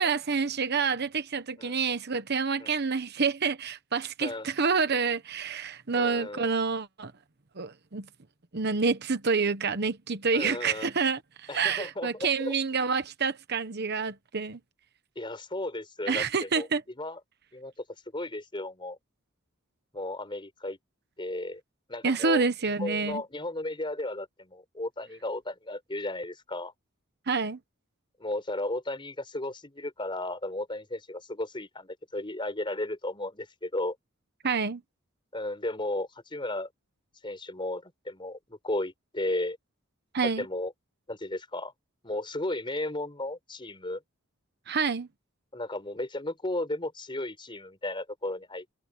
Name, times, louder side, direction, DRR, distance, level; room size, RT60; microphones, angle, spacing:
voice 1, 0.0-7.1 7.6-8.1 8.5-14.6 16.1-16.8 22.0-23.2 27.3-27.6 34.4-34.8 40.1-40.4 44.7-45.1, right 5 dB, 50° right, 1.1 m, -28 dB
voice 2, 5.9-6.5 10.3-10.9 11.5-12.5 15.2-16.7 17.0-17.2 17.5-17.7 18.1-19.0 19.9-20.8 21.2-21.6 21.9-26.7 28.2-34.0 35.3-36.7 37.2-39.6 40.2-40.7 41.1-41.7 42.0-44.0 45.5-48.6, left 1 dB, 25° left, 4.4 m, -34 dB
head